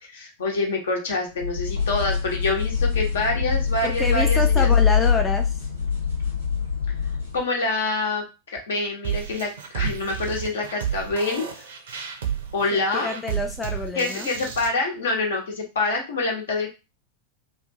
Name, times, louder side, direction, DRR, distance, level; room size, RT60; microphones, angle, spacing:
voice 1, 0.0-4.7 7.3-11.5 12.5-13.1 13.9-16.7, left 3 dB, 60° left, 0 dB, 1.0 m, -26 dB
sound 1, 1.4-7.4, left 6 dB, 85° left, 1.4 m, -23 dB
voice 2, 3.8-5.7 12.7-14.3, left 3 dB, 10° left, 2 dB, 0.4 m, -27 dB
sound 2, 9.0-14.7, right 8 dB, 60° right, 0.5 m, -31 dB
2.6 x 2.4 x 2.7 m, 0.28 s
figure-of-eight pair, 90°, 0 cm